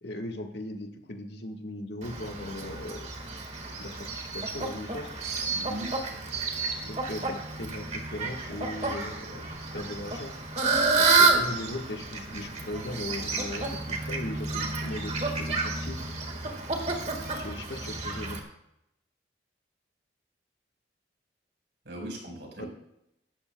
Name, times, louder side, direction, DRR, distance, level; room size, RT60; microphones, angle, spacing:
voice 1, 0.0-3.1 3.8-5.2 6.8-9.4 9.7-10.3 10.9-16.0 17.4-18.4 22.6-22.7, left 1 dB, 70° left, 3 dB, 1.5 m, -38 dB
Fowl, 2.0-18.4, right 3 dB, 35° right, 1.6 m, -30 dB
voice 2, 5.5-6.0 21.8-22.7, right 1 dB, 75° right, 0 dB, 4.6 m, -39 dB
17.0 x 12.5 x 2.2 m, 0.83 s
head